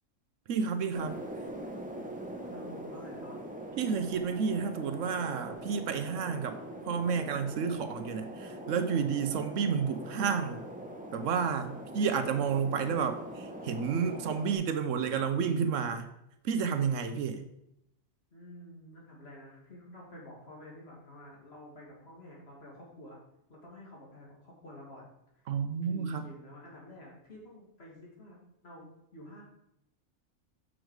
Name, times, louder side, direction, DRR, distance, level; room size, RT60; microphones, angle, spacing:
voice 1, 0.5-1.2 3.8-6.6 6.9-10.7 11.1-16.1 16.4-17.5 25.5-26.2, right 6 dB, 75° right, 8 dB, 1.0 m, -31 dB
sound 1, 0.9-14.5, right 1 dB, 5° right, 0.8 m, -42 dB
voice 2, 2.4-3.4 18.3-23.2 23.5-25.1 25.3-25.5 25.9-29.4, left 1 dB, 50° left, -3 dB, 2.4 m, -50 dB
6.4 x 6.2 x 4.7 m, 0.81 s
omnidirectional pair, 1.3 m